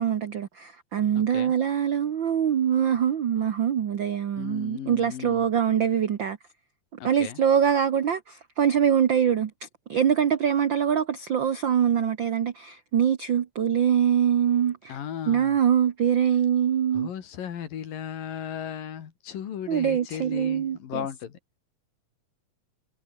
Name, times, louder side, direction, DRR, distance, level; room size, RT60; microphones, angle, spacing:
voice 1, 0.0-6.4 7.0-15.0 15.3-17.1 19.7-21.0, right 8 dB, 85° right, 1.0 m, -24 dB
voice 2, 1.2-1.5 4.4-5.5 7.0-7.4 14.9-15.6 16.9-21.4, left 9 dB, 80° left, 4.0 m, -36 dB
omnidirectional pair, 3.9 m